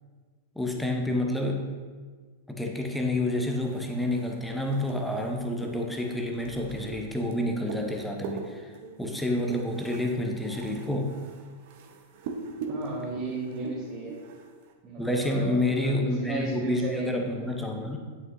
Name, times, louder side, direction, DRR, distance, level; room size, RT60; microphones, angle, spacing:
voice 1, 0.6-1.6 2.5-8.7 9.0-11.1 15.0-18.0, left 1 dB, 5° left, 2 dB, 0.8 m, -29 dB
sound 1, 3.5-14.7, right 4 dB, 50° right, 0.8 m, -42 dB
voice 2, 12.7-14.1 14.8-17.7, right 3 dB, 30° right, -9 dB, 2.0 m, -35 dB
9.0 x 5.5 x 2.7 m, 1.5 s
figure-of-eight pair, 95°, 0 cm